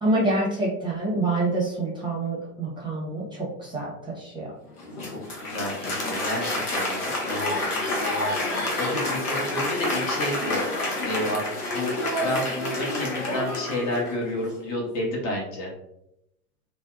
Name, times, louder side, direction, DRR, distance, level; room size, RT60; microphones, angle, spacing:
voice 1, 0.0-3.9 4.2-4.5, right 2 dB, 10° right, -5 dB, 0.7 m, -26 dB
Applause, 4.7-14.3, left 1 dB, 90° left, 0.8 m, -28 dB
voice 2, 5.0-10.6 11.0-11.4 11.7-11.9 12.2-15.7, left 1 dB, 35° left, -1 dB, 0.8 m, -31 dB
2.6 x 2.1 x 2.3 m, 0.80 s
figure-of-eight pair, 85°, 44 cm